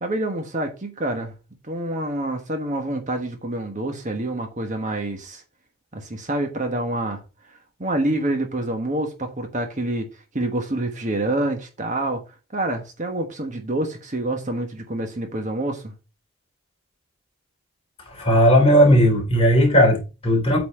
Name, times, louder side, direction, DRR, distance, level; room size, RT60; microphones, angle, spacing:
voice 1, 0.0-1.3 1.6-5.4 5.9-7.2 7.8-10.1 10.3-12.2 12.5-15.9, right 1 dB, 35° right, 1.3 m, -27 dB
voice 2, 18.1-20.7, equal, 30° left, 3.6 m, -16 dB
8.4 x 4.2 x 5.3 m
head